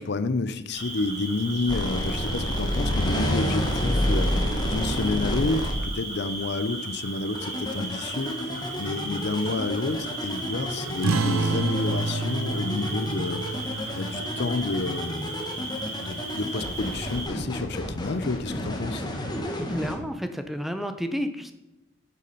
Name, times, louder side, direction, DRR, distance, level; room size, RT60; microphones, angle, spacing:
voice 1, 0.0-4.3 4.6-8.3 8.8-15.3 16.0-19.1, left 3 dB, 55° left, 12 dB, 0.6 m, -30 dB
Cricket, 0.7-17.3, right 2 dB, 30° right, 3.3 m, -36 dB
sound 1, 1.7-5.7 7.3-19.9, left 1 dB, 20° left, 1.3 m, -29 dB
sound 2, 11.0-16.1, right 3 dB, 80° right, 0.6 m, -30 dB
voice 2, 19.4-21.5, equal, ahead, 7 dB, 0.6 m, -31 dB
8.2 x 6.8 x 5.4 m, 0.99 s
head